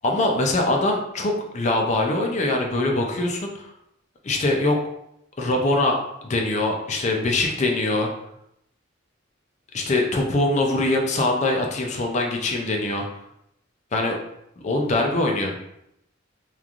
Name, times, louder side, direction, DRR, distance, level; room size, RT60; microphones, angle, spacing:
voice 1, 0.0-3.7 4.2-4.8 5.4-8.1 9.7-13.1 13.9-14.2 14.6-15.5, left 2 dB, 35° left, 1 dB, 0.4 m, -23 dB
3.0 x 2.4 x 2.4 m, 0.79 s
head